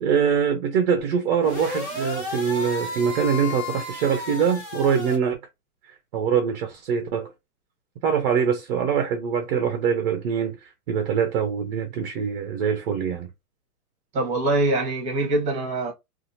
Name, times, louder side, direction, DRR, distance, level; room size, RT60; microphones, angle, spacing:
voice 1, 0.0-5.4 5.8-7.3 8.0-13.3, right 7 dB, 40° right, 0.5 m, -24 dB
sound 1, 1.4-5.2, left 2 dB, 15° left, 0.4 m, -33 dB
voice 2, 14.1-15.9, right 2 dB, 15° right, 1.0 m, -23 dB
2.7 x 2.5 x 2.6 m
hypercardioid pair, 140°, 48 cm